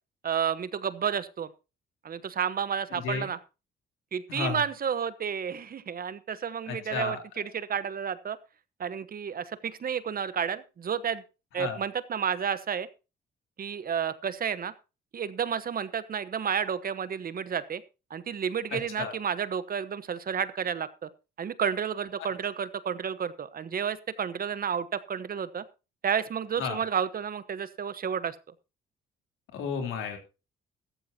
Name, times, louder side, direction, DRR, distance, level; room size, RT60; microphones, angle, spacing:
voice 1, 0.2-1.5 2.0-3.4 4.1-8.4 8.8-11.2 11.5-12.9 13.6-14.7 15.1-17.8 18.1-21.1 21.4-25.6 26.0-28.4, right 7 dB, 45° right, 15 dB, 1.1 m, -31 dB
voice 2, 2.9-3.3 4.3-4.6 6.7-7.2 11.6-11.8 19.0-19.2 22.2-22.3 26.6-26.8 29.5-30.2, left 6 dB, 85° left, 4 dB, 3.5 m, -32 dB
14.5 x 14.0 x 2.8 m, 0.30 s
cardioid pair, 90°, 20 cm